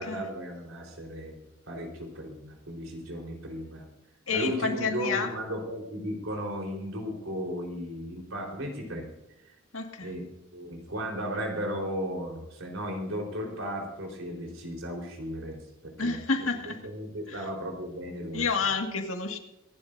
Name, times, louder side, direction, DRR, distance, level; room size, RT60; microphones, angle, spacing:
voice 1, 0.0-1.4 1.7-3.8 4.3-9.1 10.0-10.2 10.5-16.2 16.7-18.5, equal, 80° right, 1 dB, 4.1 m, -35 dB
voice 2, 4.3-5.3 9.7-10.1 16.0-16.8 17.3-17.5 18.3-19.4, left 4 dB, 85° left, 4 dB, 2.0 m, -29 dB
25.0 x 11.5 x 2.6 m, 0.89 s
head